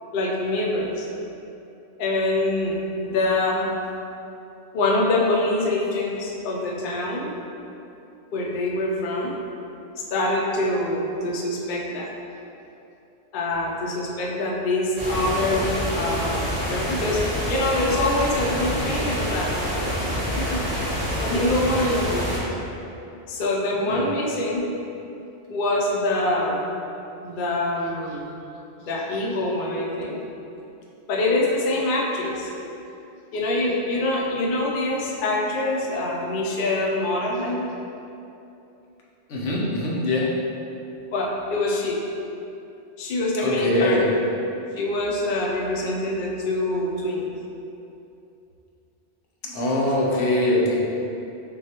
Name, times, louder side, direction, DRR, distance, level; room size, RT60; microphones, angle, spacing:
voice 1, 0.1-1.0 2.0-3.7 4.7-7.3 8.3-9.4 10.1-12.1 13.3-19.7 20.4-20.6 21.2-22.5 23.3-24.7 25.5-26.7 27.2-28.3 28.8-30.2 31.1-32.5 33.3-37.7 41.1-42.0 43.0-44.2 44.8-47.3 50.1-50.2, left 2 dB, 55° left, -2 dB, 0.6 m, -25 dB
sound 1, 15.0-22.4, equal, 35° right, 1.7 m, -27 dB
voice 2, 23.7-24.1 39.3-40.2 43.4-44.1 49.4-50.8, left 1 dB, 90° left, -4 dB, 1.1 m, -22 dB
6.2 x 2.3 x 2.8 m, 2.8 s
omnidirectional pair, 1.2 m